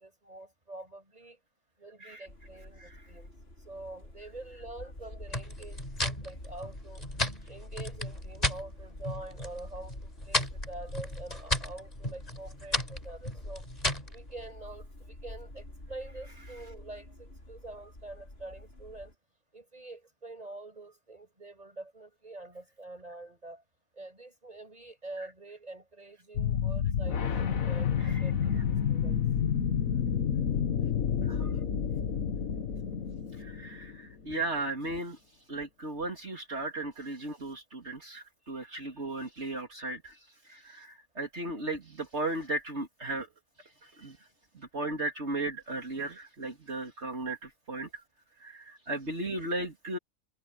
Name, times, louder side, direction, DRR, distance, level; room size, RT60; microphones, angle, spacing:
voice 1, 0.0-1.4 1.8-3.3 3.7-7.0 7.5-13.6 14.1-19.1 19.5-23.6 23.9-29.2, right 2 dB, 30° right, 7.2 m, -46 dB
sound 1, 2.3-19.1, left 1 dB, 50° left, 5.1 m, -46 dB
sound 2, 5.3-8.6 9.0-9.6 9.9-14.2, left 1 dB, 30° left, 5.0 m, -33 dB
sound 3, 26.4-34.1, left 8 dB, 85° left, 1.7 m, -29 dB
voice 2, 31.2-31.5 33.3-35.2 35.5-43.3 43.6-44.3 44.5-48.0 48.4-50.0, right 2 dB, 55° right, 3.4 m, -36 dB
omnidirectional pair, 1.4 m